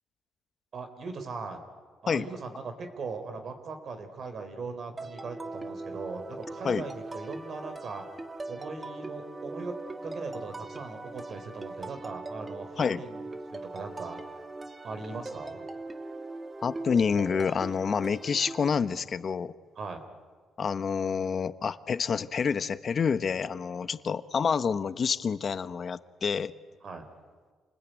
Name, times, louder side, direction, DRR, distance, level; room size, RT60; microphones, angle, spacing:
voice 1, 0.7-1.6 2.0-8.0 8.5-9.8 10.0-13.2 13.5-14.2 14.8-15.6 19.8-20.0 23.8-23.9 26.8-27.1, right 4 dB, 55° right, 7 dB, 4.1 m, -39 dB
sound 1, 5.0-18.7, right 2 dB, 20° right, 1.9 m, -40 dB
voice 2, 16.6-19.5 20.6-26.5, left 6 dB, 45° left, 13 dB, 1.1 m, -28 dB
28.5 x 20.5 x 9.4 m, 1.5 s
cardioid pair, 90°, 0 cm